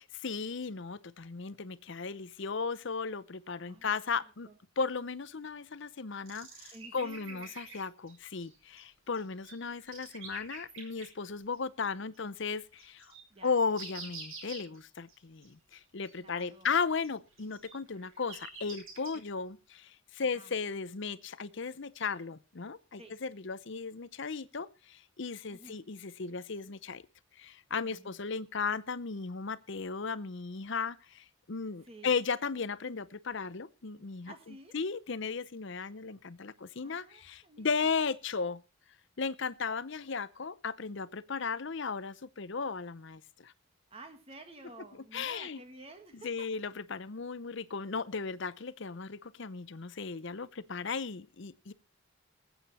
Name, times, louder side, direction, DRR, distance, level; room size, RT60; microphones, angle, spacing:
voice 1, 0.2-4.5 4.8-13.1 13.4-27.0 27.4-38.6 39.2-43.5 45.1-45.6 46.2-51.7, left 5 dB, 55° left, 17 dB, 0.7 m, -36 dB
voice 2, 3.7-4.0 4.5-4.6 6.7-7.5 13.3-13.6 16.1-16.7 20.3-20.5 22.9-23.1 25.5-25.8 27.8-28.2 31.8-32.1 34.3-34.7 36.8-37.9 43.9-46.5, right 2 dB, 25° right, 6 dB, 1.9 m, -52 dB
sound 1, 6.3-8.2 8.4-8.8 9.1-11.1 11.5-11.6 12.1-12.2 12.5-14.8 15.1-15.2 15.4-15.5 15.7-15.8 16.0-16.4 16.7-19.2, right 4 dB, 70° right, 7.2 m, -47 dB
20.0 x 8.9 x 4.3 m, 0.32 s
head